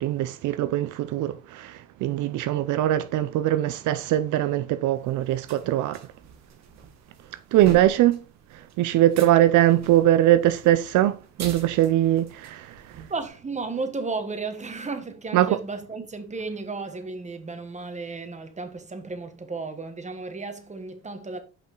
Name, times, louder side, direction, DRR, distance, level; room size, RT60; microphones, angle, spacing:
voice 1, 0.0-6.1 7.5-8.2 8.8-12.8 15.3-15.6, right 13 dB, 80° right, 0.5 m, -21 dB
sound 1, 5.0-13.3, right 6 dB, 65° right, 1.6 m, -44 dB
voice 2, 13.1-21.4, right 3 dB, 25° right, 1.3 m, -34 dB
5.6 x 5.2 x 3.7 m
cardioid pair, 90°, 30 cm